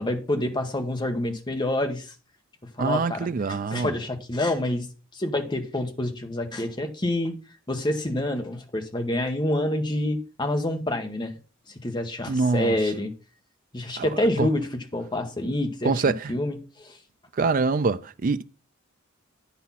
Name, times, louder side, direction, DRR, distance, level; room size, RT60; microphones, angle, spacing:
voice 1, 0.0-2.1 2.8-4.9 5.1-7.3 7.7-11.4 11.8-13.1 13.7-16.0 16.3-17.0, left 1 dB, 20° left, 1.1 m, -27 dB
voice 2, 2.8-3.9 12.3-12.7 14.0-14.1 14.4-14.5 15.8-16.3 17.4-18.4, right 4 dB, 40° right, 0.4 m, -24 dB
9.5 x 4.2 x 5.6 m
head